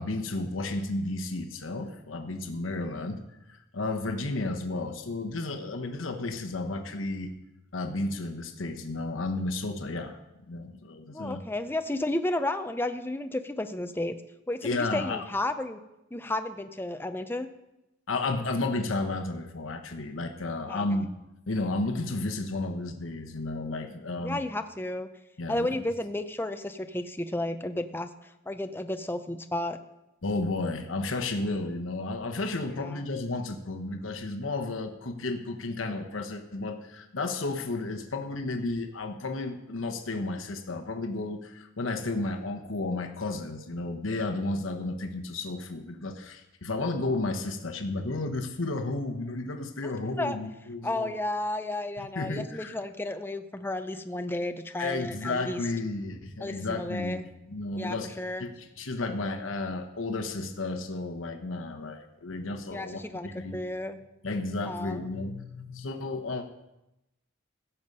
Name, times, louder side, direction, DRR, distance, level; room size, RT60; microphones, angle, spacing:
voice 1, 0.0-7.3 7.7-10.2 10.5-11.4 14.6-15.2 18.1-21.1 21.5-24.5 25.4-25.7 30.2-51.1 52.1-52.7 54.8-57.2 57.5-58.1 58.4-63.6 64.2-66.5, left 2 dB, 85° left, 5 dB, 1.1 m, -32 dB
voice 2, 11.1-14.2 14.5-15.8 16.1-17.5 20.7-21.0 24.2-25.1 25.5-29.8 32.8-33.0 50.2-50.4 50.8-55.6 56.4-57.2 57.7-58.4 62.7-64.0 64.6-65.1, left 1 dB, 10° left, 8 dB, 0.5 m, -32 dB
16.0 x 7.1 x 5.4 m, 0.93 s
head